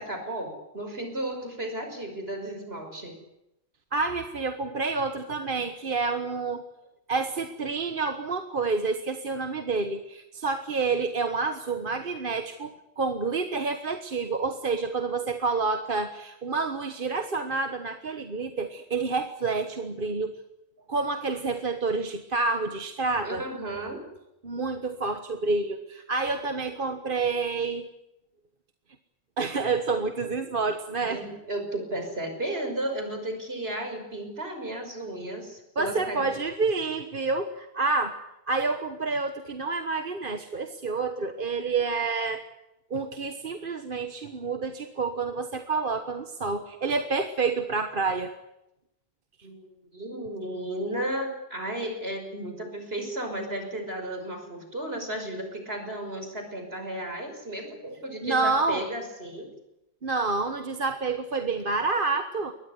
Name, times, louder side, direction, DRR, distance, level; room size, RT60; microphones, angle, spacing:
voice 1, 0.0-3.2 23.2-24.0 31.0-36.3 49.4-59.5, right 1 dB, 70° right, 5 dB, 6.2 m, -34 dB
voice 2, 3.9-6.6 7.1-20.4 20.9-23.4 24.4-27.9 29.4-31.2 35.8-38.2 38.5-42.4 42.9-48.3 58.2-58.8 60.0-62.5, right 4 dB, 55° right, 8 dB, 1.5 m, -28 dB
23.0 x 19.5 x 9.8 m, 0.88 s
omnidirectional pair, 1.1 m